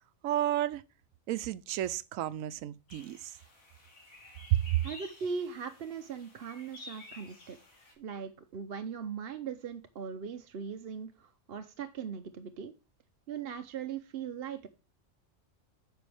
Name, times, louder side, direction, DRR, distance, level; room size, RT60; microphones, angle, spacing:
voice 1, 0.2-0.8 1.3-3.4 4.5-4.8, right 13 dB, 80° right, 1.0 m, -31 dB
sound 1, 2.9-7.9, left 2 dB, 85° left, 2.8 m, -52 dB
voice 2, 4.8-7.6 8.0-12.7 13.3-14.7, right 6 dB, 55° right, 0.8 m, -39 dB
9.2 x 6.1 x 3.4 m
omnidirectional pair, 1.4 m